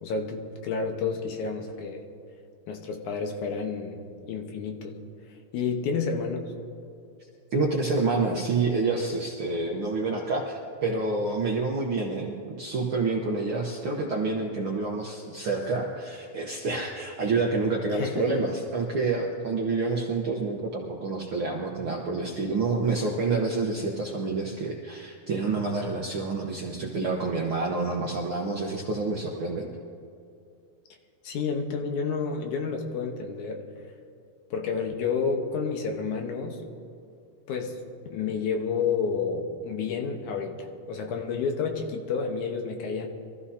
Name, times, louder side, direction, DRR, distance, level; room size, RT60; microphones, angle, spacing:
voice 1, 0.0-2.0 2.7-4.0 4.2-5.0 5.5-6.5 17.9-18.4 31.2-33.7 34.5-36.6 37.5-37.8 38.1-43.1, left 5 dB, 75° left, 3 dB, 2.5 m, -30 dB
voice 2, 7.5-29.7, right 3 dB, 60° right, -1 dB, 1.4 m, -28 dB
24.0 x 14.0 x 2.8 m, 2.5 s
omnidirectional pair, 3.6 m